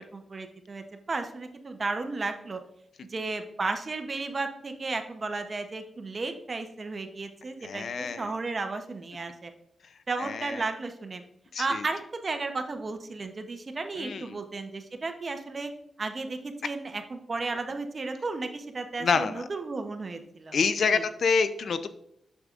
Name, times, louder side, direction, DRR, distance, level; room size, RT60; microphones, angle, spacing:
voice 1, 0.1-2.6 3.1-9.5 10.1-11.2 11.6-15.7 16.0-20.6 20.9-21.0, right 3 dB, 35° right, 6 dB, 0.8 m, -34 dB
voice 2, 7.6-8.3 10.2-10.6 11.5-11.9 14.0-14.4 19.0-19.5 20.5-21.9, left 5 dB, 60° left, 11 dB, 0.4 m, -27 dB
7.9 x 6.6 x 2.5 m, 0.75 s
wide cardioid pair, 135°, 0 cm